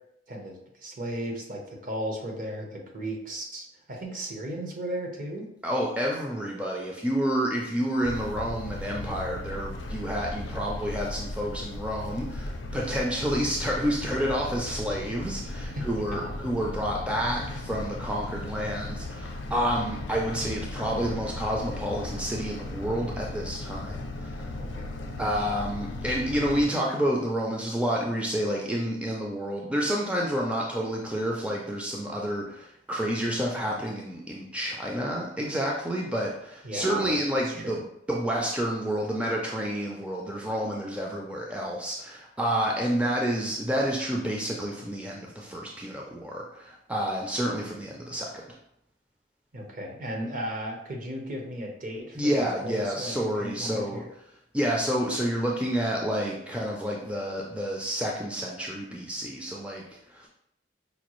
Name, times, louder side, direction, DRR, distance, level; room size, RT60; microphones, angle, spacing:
voice 1, 0.3-5.5 12.7-13.0 15.7-16.3 24.6-24.9 36.6-37.8 49.5-54.1, right 1 dB, 50° right, 0 dB, 0.8 m, -36 dB
voice 2, 5.6-24.5 25.2-37.8 38.1-48.3 52.2-54.0 54.5-59.8 60.1-60.3, equal, 5° right, -2 dB, 0.4 m, -29 dB
sound 1, 8.0-26.7, left 2 dB, 85° left, 0.5 m, -36 dB
5.1 x 2.3 x 3.0 m, 0.77 s
head